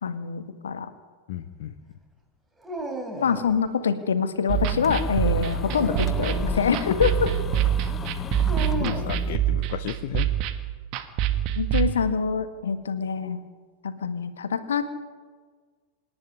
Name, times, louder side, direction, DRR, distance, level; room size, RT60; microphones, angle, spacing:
voice 1, 0.0-0.9 3.2-7.3 11.5-13.4 13.8-15.0, left 6 dB, 65° left, 10 dB, 1.7 m, -25 dB
voice 2, 1.3-1.7 8.8-10.3, left 12 dB, 50° left, 10 dB, 0.9 m, -33 dB
Dog, 2.6-3.6 5.5-7.0 8.5-9.2, equal, 10° right, 3.4 m, -34 dB
sound 1, 4.5-9.4, left 8 dB, 20° left, 0.5 m, -33 dB
sound 2, 4.5-11.9, right 12 dB, 40° right, 1.7 m, -26 dB
26.5 x 10.5 x 9.7 m, 1.5 s
figure-of-eight pair, 90°, 0 cm